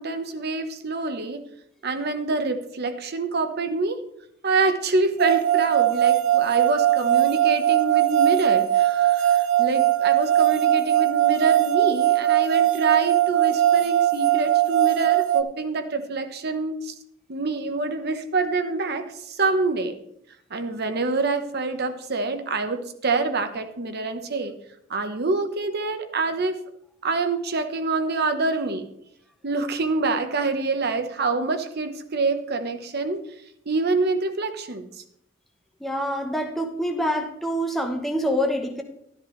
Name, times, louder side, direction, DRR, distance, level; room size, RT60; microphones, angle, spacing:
voice 1, 0.0-1.5 1.8-4.0 4.4-16.9 17.3-20.0 20.5-24.5 24.9-26.6 27.0-28.9 29.4-33.2 33.7-35.0, right 3 dB, 55° right, 8 dB, 1.0 m, -26 dB
sound 1, 5.2-15.4, right 13 dB, 80° right, 0.6 m, -20 dB
voice 2, 35.8-38.8, equal, ahead, 2 dB, 0.9 m, -26 dB
12.5 x 10.5 x 3.2 m, 0.75 s
head